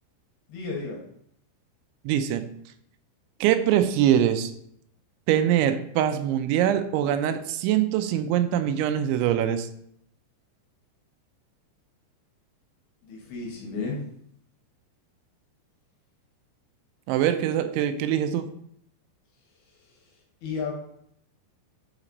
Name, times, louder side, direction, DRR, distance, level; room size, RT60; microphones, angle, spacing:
voice 1, 0.5-1.0 13.0-14.0 20.4-20.7, left 4 dB, 65° left, -1 dB, 2.9 m, -32 dB
voice 2, 2.1-2.4 3.4-4.5 5.3-9.7 17.1-18.5, right 10 dB, 85° right, 9 dB, 2.9 m, -23 dB
8.9 x 4.2 x 3.9 m, 0.70 s
omnidirectional pair, 5.4 m